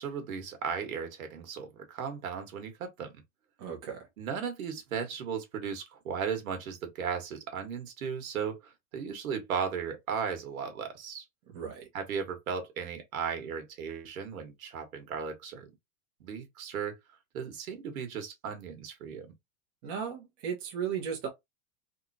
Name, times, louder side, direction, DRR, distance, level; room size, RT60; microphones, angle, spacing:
voice 1, 0.0-3.1 4.2-11.2 11.9-15.7 16.2-17.0 17.3-19.3, right 6 dB, 90° right, 1.7 m, -36 dB
voice 2, 3.6-4.0 11.5-11.9 19.8-21.3, right 7 dB, 25° right, 1.0 m, -35 dB
3.7 x 3.0 x 2.7 m
supercardioid pair, 175°, 41 cm